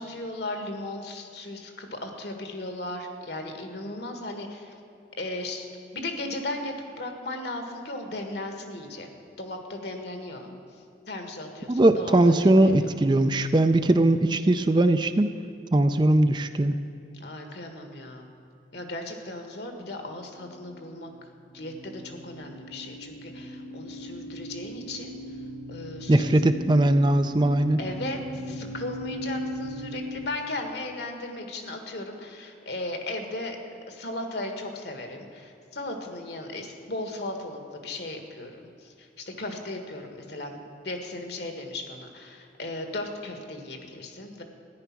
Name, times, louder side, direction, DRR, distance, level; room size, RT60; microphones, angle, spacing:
voice 1, 0.0-4.8 5.2-9.1 9.4-10.5 11.1-12.9 17.1-18.3 18.7-21.1 21.5-25.1 25.7-26.4 27.8-33.6 33.9-44.4, left 2 dB, 65° left, 4 dB, 1.7 m, -36 dB
voice 2, 11.7-15.3 15.7-16.8 26.1-27.8, right 1 dB, 25° right, 9 dB, 0.4 m, -20 dB
sound 1, 20.3-21.1 21.5-30.3, equal, 30° left, 1.0 m, -38 dB
13.5 x 10.5 x 6.0 m, 2.7 s
head